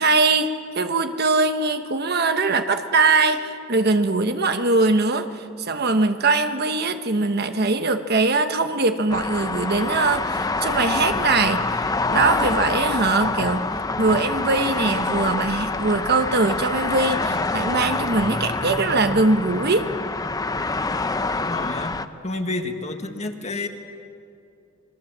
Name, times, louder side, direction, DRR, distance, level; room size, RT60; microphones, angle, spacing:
voice 1, 0.0-13.7 14.0-19.9, right 3 dB, 55° right, 8 dB, 1.2 m, -21 dB
sound 1, 9.1-22.1, left 3 dB, 20° left, 0.7 m, -26 dB
voice 2, 21.3-21.9 22.2-23.7, left 2 dB, 35° left, 5 dB, 1.7 m, -29 dB
27.5 x 22.0 x 7.4 m, 2.6 s
head